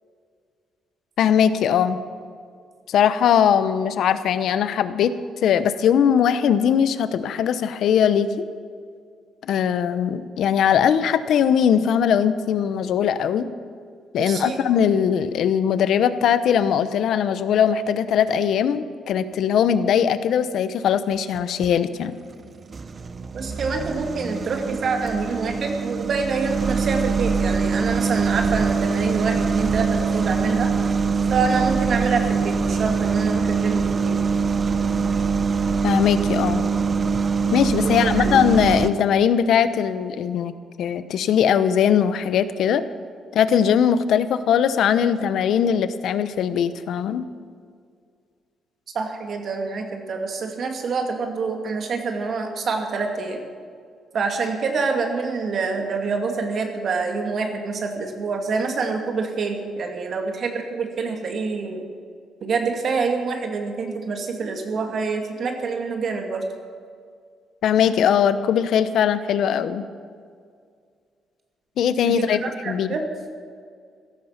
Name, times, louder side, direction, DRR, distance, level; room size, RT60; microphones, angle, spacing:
voice 1, 1.2-2.0 2.9-5.1 5.4-8.4 9.5-13.5 14.1-22.1 35.8-36.6 37.5-40.5 40.8-42.8 43.3-47.2 67.6-69.8 71.8-72.9, left 8 dB, 75° left, 13 dB, 0.9 m, -20 dB
voice 2, 14.2-14.6 23.3-30.7 31.3-34.2 37.8-38.3 48.9-53.4 54.1-61.9 62.4-66.4 72.1-73.1, right 4 dB, 55° right, 3 dB, 2.4 m, -26 dB
sound 1, 21.1-21.7 22.3-38.9, right 5 dB, 40° right, 0.8 m, -23 dB
16.5 x 13.5 x 5.9 m, 2.1 s
cardioid pair, 90°, 0 cm